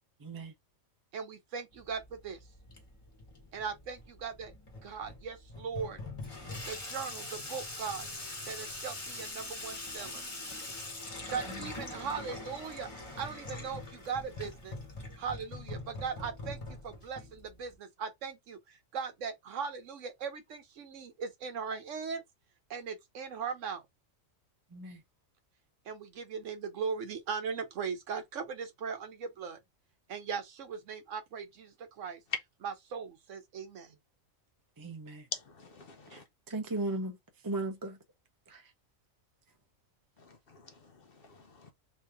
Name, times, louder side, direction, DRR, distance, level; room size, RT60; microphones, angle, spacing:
voice 1, 0.2-0.5 11.5-11.7 24.7-25.0 34.8-35.3 36.1-38.0 38.5-38.7, right 2 dB, 25° right, 0.4 m, -38 dB
voice 2, 1.1-2.4 3.5-4.5 4.8-6.0 6.7-8.1 8.5-10.2 11.3-12.9 13.2-14.8 15.2-22.2 22.7-23.8 25.9-29.6 30.1-32.2 32.6-33.9, right 6 dB, 70° right, 1.1 m, -39 dB
Water tap faucet / Sink (filling or washing), 1.7-17.7, left 2 dB, 25° left, 1.1 m, -43 dB
voice 3, 35.3-36.2 40.2-41.7, left 4 dB, 55° left, 0.8 m, -46 dB
3.2 x 2.7 x 3.4 m
omnidirectional pair, 1.4 m